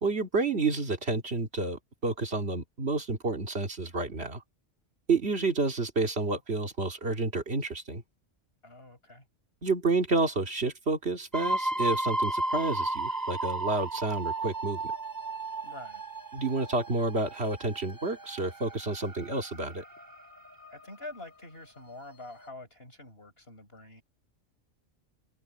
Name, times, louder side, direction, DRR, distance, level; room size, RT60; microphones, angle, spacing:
voice 1, 0.0-4.4 5.1-8.0 9.6-14.8 16.3-19.8, right 3 dB, 60° right, 2.5 m, -30 dB
voice 2, 8.6-9.2 15.6-16.0 20.7-24.0, left 2 dB, 55° left, 7.7 m, -46 dB
sound 1, 11.3-21.3 22.1-22.2 22.4-22.5, right 2 dB, 15° right, 3.7 m, -34 dB
omnidirectional pair, 1.3 m